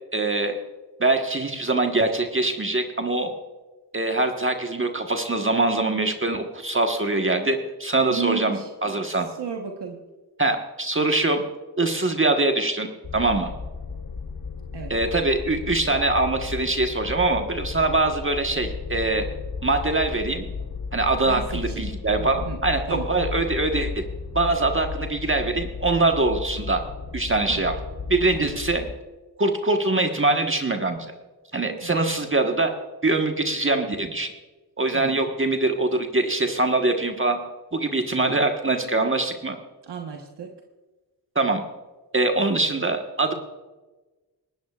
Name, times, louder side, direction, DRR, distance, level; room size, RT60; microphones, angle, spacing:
voice 1, 0.1-0.6 1.0-3.3 3.9-9.3 10.4-11.4 11.8-13.5 14.9-19.2 19.6-20.5 20.9-24.0 24.3-26.8 27.1-27.7 28.1-28.9 29.4-31.1 31.5-32.7 33.0-34.3 34.8-37.4 37.7-39.6 41.3-41.6 42.1-43.3, right 2 dB, 30° right, 4 dB, 1.3 m, -23 dB
voice 2, 8.1-8.7 9.3-10.0 14.7-14.9 21.3-21.9 22.2-22.6 22.9-23.0 27.5-27.7 28.3-28.5 31.8-31.9 34.9-35.3 39.8-40.5, right 7 dB, 70° right, 2 dB, 1.3 m, -33 dB
sound 1, 13.0-28.9, left 5 dB, 45° left, 1.1 m, -34 dB
19.0 x 13.5 x 2.4 m, 1.2 s
supercardioid pair, 40°, 43 cm